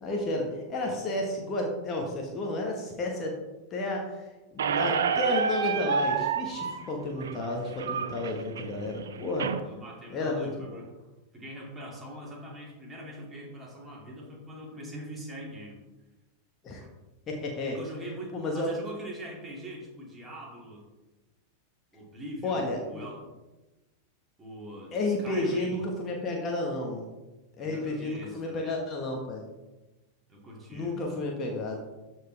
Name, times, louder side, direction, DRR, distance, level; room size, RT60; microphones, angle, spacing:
voice 1, 0.0-3.3 3.7-9.5 10.1-10.8 16.6-16.8 17.3-17.8 18.3-18.7 22.4-23.1 24.9-27.1 27.6-29.5 30.7-31.8, left 2 dB, 30° left, 0 dB, 1.4 m, -32 dB
Squeak, 4.6-9.6, right 6 dB, 65° right, 0.6 m, -29 dB
voice 2, 9.6-10.9 11.3-15.8 16.8-16.9 17.6-20.8 21.9-23.3 24.4-25.8 27.6-28.8 30.3-31.0, right 1 dB, 15° right, -2 dB, 2.5 m, -43 dB
13.0 x 4.6 x 3.4 m, 1.1 s
figure-of-eight pair, 90°, 0 cm